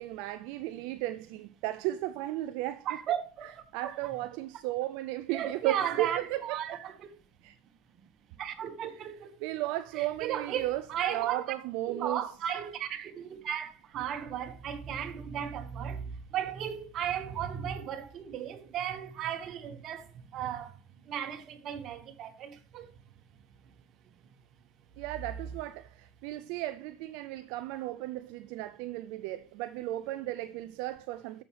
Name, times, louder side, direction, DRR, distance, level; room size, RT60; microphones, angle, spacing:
voice 1, 0.0-3.0 3.7-6.8 7.4-7.6 8.9-12.2 25.0-31.4, right 15 dB, 70° right, 0.4 m, -35 dB
voice 2, 2.8-3.9 5.3-7.1 8.4-9.3 9.9-11.4 11.9-16.0 16.3-20.0 20.3-20.7 21.1-22.9, right 9 dB, 50° right, 1.4 m, -35 dB
13.5 x 6.3 x 3.3 m
hypercardioid pair, 85°, 0 cm